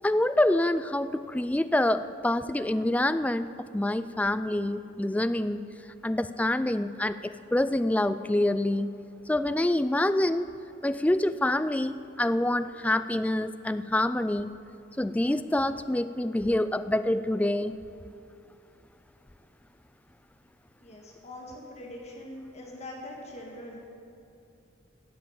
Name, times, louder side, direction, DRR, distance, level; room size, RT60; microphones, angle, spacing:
voice 1, 0.0-3.5 3.7-5.6 6.0-8.9 9.3-10.5 10.8-14.5 15.0-17.8, left 1 dB, 10° left, 12 dB, 0.3 m, -26 dB
voice 2, 20.8-23.9, left 1 dB, 35° left, -1 dB, 1.8 m, -43 dB
14.0 x 7.5 x 8.9 m, 2.6 s
head